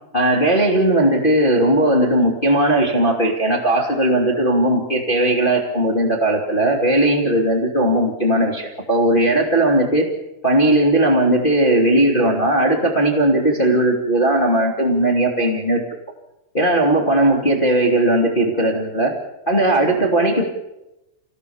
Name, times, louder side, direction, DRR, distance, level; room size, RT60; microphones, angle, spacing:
voice 1, 0.1-10.1 10.4-15.8 16.5-19.1 19.4-20.4, right 1 dB, 45° left, 0 dB, 0.6 m, -17 dB
27.0 x 17.5 x 7.1 m, 0.95 s
omnidirectional pair, 5.8 m